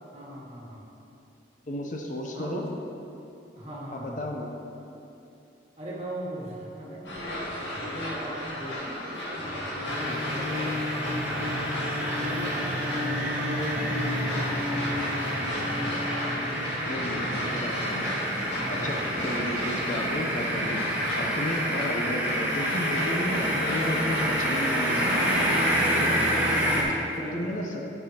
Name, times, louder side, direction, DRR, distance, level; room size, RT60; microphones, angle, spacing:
voice 1, 0.1-0.9 2.3-2.7 3.6-4.4 5.8-7.5 7.8-11.9 12.2-18.4 19.3-19.6 21.9-22.2 26.5-27.5, equal, 35° right, -5 dB, 1.7 m, -41 dB
voice 2, 1.7-2.6 3.9-4.5 16.8-18.1 18.7-20.8 21.1-25.5 25.9-26.1 27.3-27.8, left 1 dB, 45° left, 1 dB, 0.6 m, -33 dB
sound 1, 7.0-26.0, equal, 90° left, 1.8 m, -34 dB
sound 2, 9.8-26.8, equal, 10° right, 1.4 m, -28 dB
11.5 x 6.8 x 2.9 m, 2.8 s
head